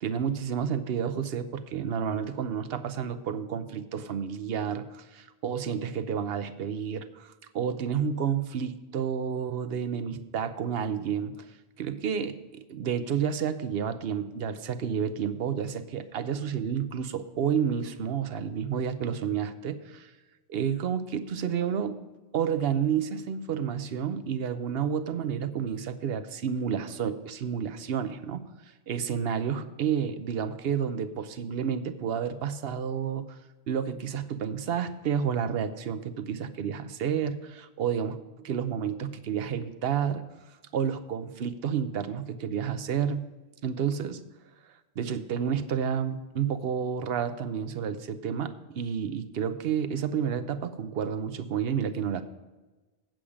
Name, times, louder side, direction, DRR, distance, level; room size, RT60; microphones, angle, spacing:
voice 1, 0.0-20.1 20.5-22.0 22.3-28.4 28.9-33.4 33.7-38.2 38.4-40.3 40.7-43.3 43.6-44.2 45.0-52.2, right 7 dB, 75° right, 11 dB, 0.9 m, -30 dB
8.6 x 7.6 x 4.9 m, 1.2 s
omnidirectional pair, 1.0 m